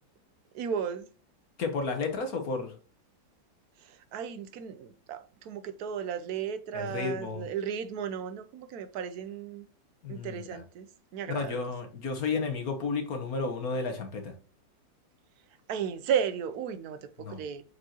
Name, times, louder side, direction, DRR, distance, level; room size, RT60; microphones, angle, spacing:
voice 1, 0.5-1.1 3.8-9.7 10.1-11.6 15.7-17.6, right 7 dB, 65° right, 1.0 m, -34 dB
voice 2, 1.6-2.7 6.7-7.5 10.0-10.6 11.3-14.3 17.2-17.4, left 4 dB, 55° left, 1.4 m, -32 dB
6.2 x 5.2 x 2.9 m
omnidirectional pair, 2.0 m